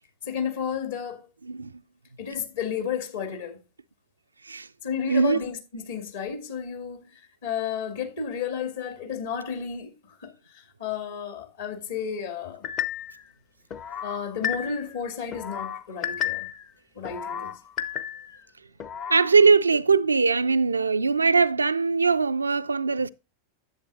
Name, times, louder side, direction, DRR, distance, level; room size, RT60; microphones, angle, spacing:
voice 1, 0.2-1.3 2.2-3.6 4.8-12.6 14.0-16.5 16.9-17.5, left 7 dB, 60° left, 2.2 m, -32 dB
voice 2, 5.1-5.5 19.1-23.1, right 4 dB, 80° right, 0.4 m, -21 dB
sound 1, 12.6-13.2 13.7-14.9 15.3-16.6 17.0-18.4 18.8-19.3, left 9 dB, 35° left, 0.8 m, -32 dB
10.5 x 8.4 x 2.5 m
figure-of-eight pair, 90°, 0 cm